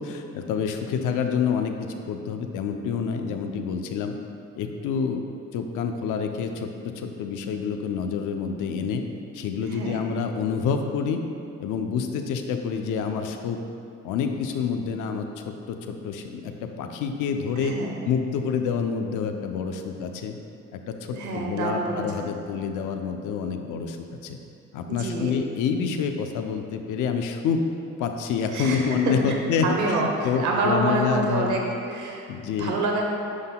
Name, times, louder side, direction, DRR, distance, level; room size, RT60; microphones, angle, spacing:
voice 1, 0.0-4.1 4.6-5.2 5.5-6.7 7.0-9.0 9.3-11.2 11.6-13.6 14.0-17.8 18.0-20.4 20.7-24.0 24.2-24.4 24.7-27.6 28.0-31.6 32.3-32.8, left 6 dB, 85° left, 5 dB, 0.6 m, -27 dB
voice 2, 9.6-10.0 17.6-18.0 21.1-22.3 24.9-25.4 28.5-29.3 29.6-31.6 31.9-33.0, right 3 dB, 70° right, 0 dB, 1.0 m, -27 dB
9.6 x 5.6 x 2.2 m, 2.7 s
cardioid pair, 90°, 30 cm